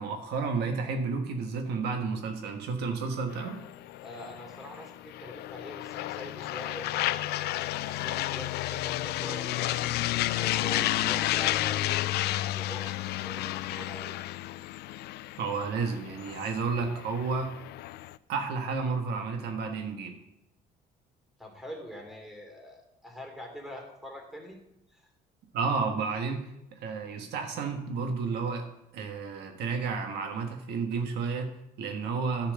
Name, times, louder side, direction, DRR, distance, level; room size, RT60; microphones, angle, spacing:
voice 1, 0.0-3.6 15.4-17.6 18.3-20.1 25.5-28.6 28.9-32.5, right 4 dB, 75° right, 5 dB, 1.3 m, -31 dB
sound 1, 3.3-18.2, left 15 dB, 75° left, 0.4 m, -32 dB
voice 2, 4.0-9.9 10.4-14.1 21.4-24.6 24.9-25.1, equal, ahead, 1 dB, 2.8 m, -44 dB
10.0 x 5.9 x 6.8 m, 0.85 s
cardioid pair, 110°, 17 cm